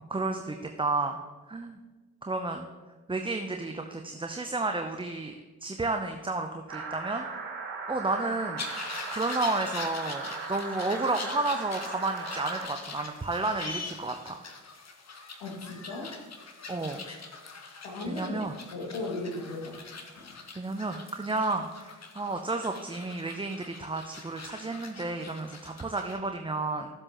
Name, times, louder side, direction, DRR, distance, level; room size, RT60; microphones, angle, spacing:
voice 1, 0.1-1.2 1.5-1.8 2.2-2.7 3.1-5.3 5.6-7.3 7.9-8.6 9.1-14.4 16.7-17.0 18.1-18.5 20.6-26.9, right 3 dB, 10° right, 5 dB, 0.7 m, -31 dB
sound 1, 6.7-12.7, right 4 dB, 50° right, 2.4 m, -38 dB
sound 2, 8.6-26.2, left 4 dB, 35° left, 1.4 m, -43 dB
voice 2, 15.4-16.1 17.8-18.4 18.7-19.8 20.1-20.3, left 2 dB, 70° left, -2 dB, 2.3 m, -36 dB
13.0 x 7.7 x 3.0 m, 1.3 s
hypercardioid pair, 40°, 45 cm